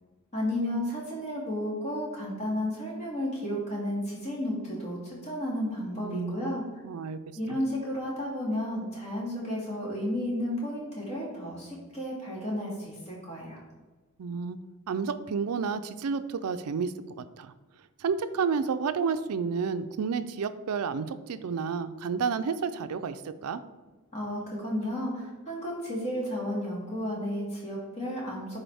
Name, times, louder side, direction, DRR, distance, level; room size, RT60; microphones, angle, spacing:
voice 1, 0.3-6.6 7.4-13.6 24.1-28.6, left 1 dB, 30° left, -4 dB, 2.1 m, -32 dB
voice 2, 6.0-7.2 7.5-7.6 14.2-14.6 14.9-16.9 17.4-17.5 18.0-23.6, right 5 dB, 90° right, 12 dB, 0.4 m, -31 dB
10.0 x 4.0 x 3.4 m, 1.2 s
head